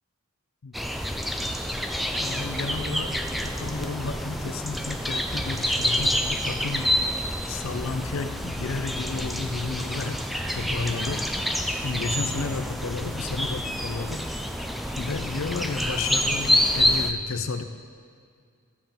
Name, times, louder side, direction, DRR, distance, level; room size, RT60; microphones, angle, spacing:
sound 1, 0.7-17.1, equal, ahead, 0.4 m, -28 dB
voice 1, 2.2-6.9 7.5-10.2 10.5-11.3 11.8-14.3 15.0-17.6, left 4 dB, 65° left, 9 dB, 0.5 m, -32 dB
14.5 x 7.3 x 3.6 m, 2.2 s
head